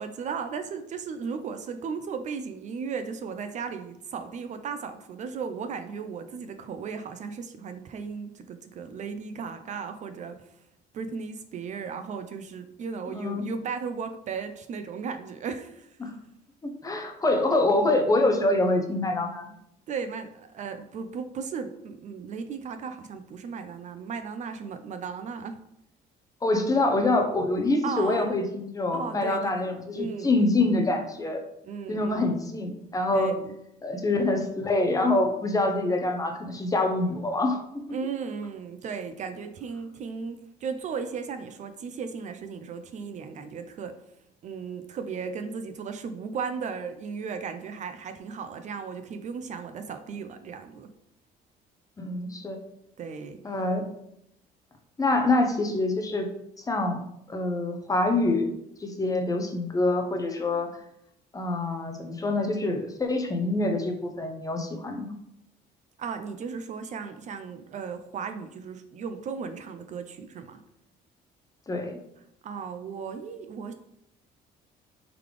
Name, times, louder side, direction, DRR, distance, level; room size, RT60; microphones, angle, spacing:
voice 1, 0.0-10.4 10.9-15.9 17.5-17.6 19.9-25.6 27.8-28.3 28.9-29.6 29.9-30.7 31.7-32.4 33.1-33.5 37.9-44.0 44.4-50.9 53.0-53.4 66.0-70.6 72.4-73.7, right 6 dB, 45° right, 8 dB, 0.4 m, -36 dB
voice 2, 13.1-13.5 16.0-16.1 16.6-19.5 26.4-31.4 31.9-33.4 33.8-38.0 52.0-52.6 53.4-53.9 55.0-56.3 56.6-57.0 57.3-58.5 58.8-60.7 61.3-65.1 71.7-72.0, left 2 dB, 20° left, 4 dB, 0.6 m, -25 dB
3.8 x 3.3 x 3.3 m, 0.77 s
cardioid pair, 110°, 17 cm